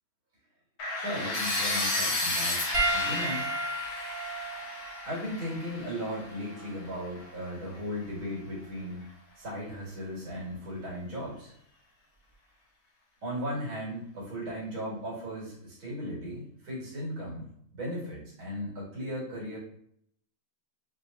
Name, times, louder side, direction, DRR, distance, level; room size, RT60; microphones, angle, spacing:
sound 1, 0.8-6.7, left 2 dB, 75° left, 1.8 m, -32 dB
voice 1, 1.0-2.6 2.9-3.5 5.1-9.0 9.4-11.5 13.2-19.6, equal, 75° right, -5 dB, 2.7 m, -36 dB
Piano, 2.7-7.4 8.3-8.5 10.5-10.6, right 1 dB, 45° right, 0.9 m, -34 dB
6.1 x 2.7 x 2.5 m, 0.69 s
omnidirectional pair, 2.2 m